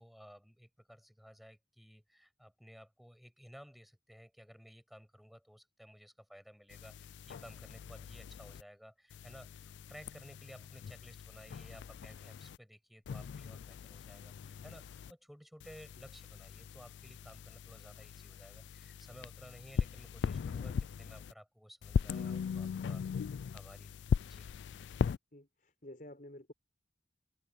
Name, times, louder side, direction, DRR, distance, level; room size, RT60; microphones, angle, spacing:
voice 1, 0.0-23.0 23.5-24.5, equal, ahead, 7.6 m, -56 dB
sound 1, 6.7-8.6 9.1-12.6 13.1-15.1 15.6-21.3 21.8-25.2, left 6 dB, 70° left, 0.3 m, -39 dB
voice 2, 25.3-26.5, left 1 dB, 45° left, 5.1 m, -51 dB
head